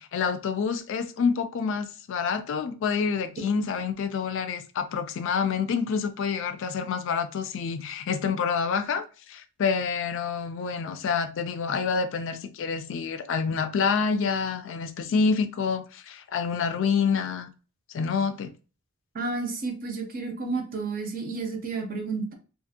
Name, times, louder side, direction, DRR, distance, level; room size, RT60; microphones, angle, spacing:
voice 1, 0.0-17.5 17.9-18.5, left 5 dB, 65° left, 0.4 m, -27 dB
voice 2, 19.1-22.3, right 3 dB, 45° right, 0.6 m, -31 dB
2.5 x 2.5 x 2.7 m
head